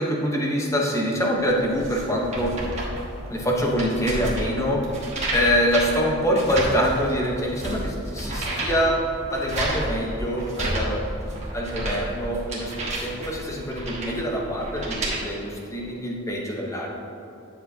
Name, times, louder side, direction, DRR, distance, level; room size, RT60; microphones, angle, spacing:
voice 1, 0.0-2.5 3.3-4.8 5.3-9.0 9.3-11.0 11.5-16.9, equal, 15° left, -1 dB, 0.8 m, -25 dB
sound 1, 1.4-15.2, right 1 dB, 30° right, 1.3 m, -31 dB
9.9 x 6.9 x 2.7 m, 2.8 s
head